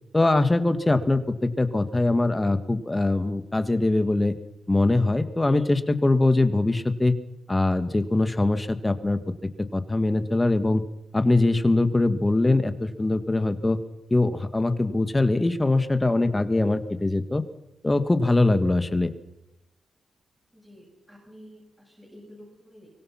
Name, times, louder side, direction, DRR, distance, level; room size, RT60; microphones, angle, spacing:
voice 1, 0.1-4.3 4.7-7.1 7.5-10.8 11.1-13.8 14.1-17.4 17.8-19.1, left 2 dB, 15° left, 10 dB, 1.7 m, -22 dB
voice 2, 20.5-22.9, equal, 5° right, -4 dB, 7.8 m, -49 dB
24.5 x 22.5 x 5.8 m, 0.93 s
wide cardioid pair, 135°, 0 cm